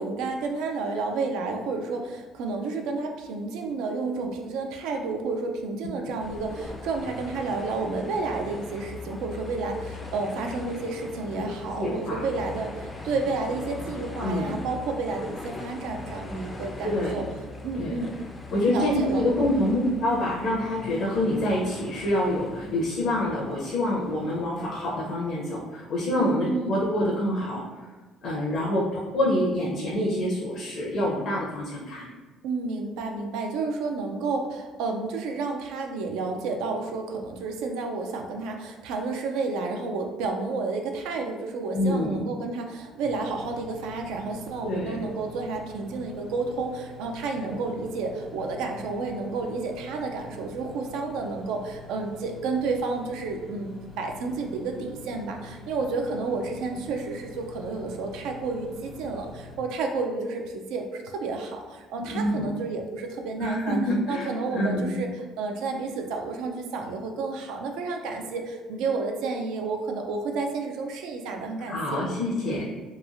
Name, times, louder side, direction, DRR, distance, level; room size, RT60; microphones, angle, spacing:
voice 1, 0.0-17.2 17.6-18.2 18.7-19.5 26.2-26.7 32.4-53.7 54.0-63.8 64.1-72.0, right 3 dB, 85° right, 3 dB, 0.3 m, -31 dB
sound 1, 6.2-25.0, left 2 dB, 20° left, 0.3 m, -41 dB
voice 2, 11.8-12.3 14.2-14.6 16.8-17.3 17.8-17.9 18.5-27.6 28.2-32.1 41.7-42.2 44.6-45.0 47.5-47.6 62.1-62.5 63.4-65.0 71.7-72.6, left 1 dB, 65° left, -5 dB, 0.6 m, -26 dB
sound 2, 43.0-59.6, left 2 dB, 60° right, 0.8 m, -46 dB
2.9 x 2.3 x 2.4 m, 1.3 s
cardioid pair, 105°, 0 cm